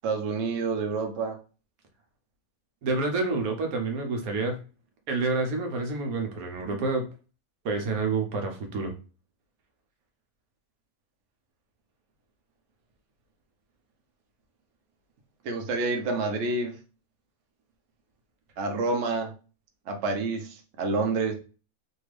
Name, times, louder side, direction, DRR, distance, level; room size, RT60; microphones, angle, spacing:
voice 1, 0.0-1.4 15.4-16.7 18.6-19.3 19.9-21.3, right 3 dB, 60° right, 4 dB, 0.9 m, -28 dB
voice 2, 2.8-4.6 5.1-7.0 7.6-8.9, right 3 dB, 75° right, 3 dB, 1.2 m, -28 dB
3.4 x 2.3 x 3.1 m, 0.35 s
omnidirectional pair, 1.6 m